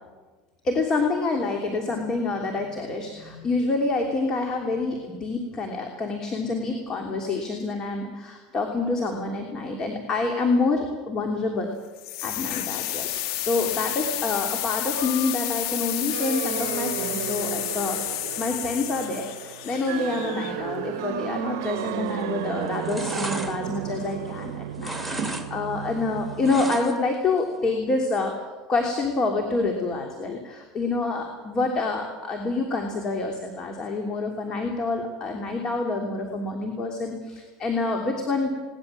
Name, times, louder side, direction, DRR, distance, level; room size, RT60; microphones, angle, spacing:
voice 1, 0.6-11.7 12.2-13.1 13.4-28.3 28.7-38.5, left 3 dB, 30° left, 3 dB, 3.1 m, -27 dB
sound 1, 12.0-20.8, left 13 dB, 75° left, 1.7 m, -31 dB
sound 2, 16.1-26.6, right 13 dB, 80° right, 0.7 m, -34 dB
sound 3, 22.0-22.4 22.7-24.4 24.7-25.5 25.7-27.1 27.5-27.6, right 2 dB, ahead, 2.2 m, -33 dB
20.5 x 19.0 x 7.5 m, 1.3 s
supercardioid pair, 125°, 2 cm